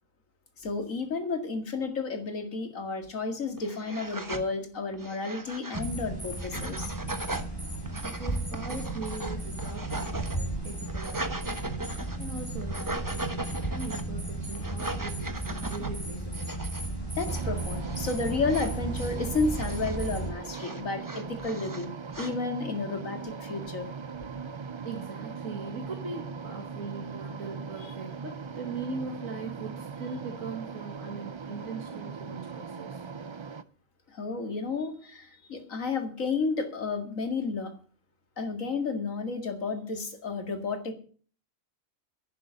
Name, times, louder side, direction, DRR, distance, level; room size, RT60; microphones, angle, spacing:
voice 1, 0.6-6.9 17.2-21.9 22.2-23.9 27.8-27.9 34.1-37.7 38.4-40.9, left 4 dB, 85° left, 6 dB, 2.5 m, -32 dB
sound 1, 3.0-3.1 3.6-4.5 4.9-5.9 6.3-7.5 7.9-10.4 10.7-12.2 12.6-14.1 14.5-15.9 16.3-16.9 17.1-17.5 17.7-18.2 18.4-20.1 20.5-22.3, right 2 dB, 15° right, 1.0 m, -38 dB
sound 2, 5.8-20.3, right 2 dB, 15° left, 4.9 m, -34 dB
voice 2, 8.0-16.6 24.8-33.1, right 4 dB, 80° right, 2 dB, 2.4 m, -40 dB
sound 3, 17.3-33.6, right 5 dB, 45° right, 0.3 m, -40 dB
11.0 x 8.4 x 8.0 m, 0.43 s
omnidirectional pair, 1.4 m